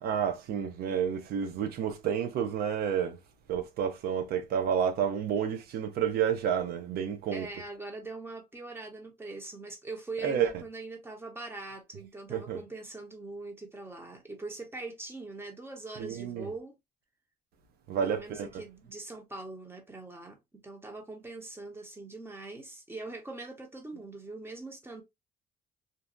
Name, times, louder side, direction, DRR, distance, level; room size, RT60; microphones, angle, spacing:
voice 1, 0.0-3.2 3.5-7.5 10.2-10.6 12.3-12.6 16.0-16.5 17.9-18.6, right 8 dB, 70° right, 0.7 m, -30 dB
voice 2, 7.3-16.7 18.0-25.0, right 2 dB, 15° right, 1.0 m, -42 dB
2.7 x 2.2 x 2.5 m
cardioid pair, 110°, 17 cm